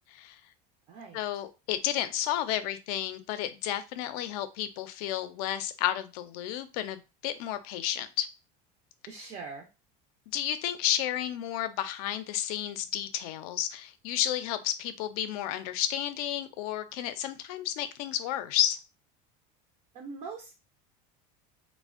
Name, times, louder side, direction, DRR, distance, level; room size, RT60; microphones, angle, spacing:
voice 1, 0.1-0.4 1.1-8.3 10.3-18.8, left 11 dB, 75° left, 11 dB, 0.4 m, -32 dB
voice 2, 0.9-1.4 9.1-9.7 19.9-20.5, right 4 dB, 35° right, 1 dB, 0.4 m, -42 dB
2.4 x 2.1 x 2.4 m, 0.28 s
cardioid pair, 145°, 20 cm